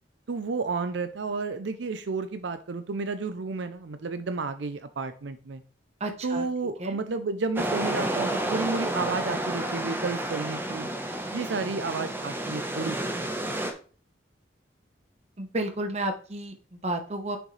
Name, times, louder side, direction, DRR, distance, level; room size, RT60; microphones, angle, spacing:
voice 1, 0.3-5.6 6.2-10.9 11.3-13.3, right 4 dB, 75° right, 11 dB, 0.5 m, -31 dB
voice 2, 6.0-6.4 6.8-7.0 15.4-17.4, right 1 dB, 35° right, 6 dB, 1.0 m, -32 dB
sound 1, 7.6-13.7, right 1 dB, 10° right, 1.0 m, -30 dB
6.8 x 6.4 x 3.2 m, 0.40 s
head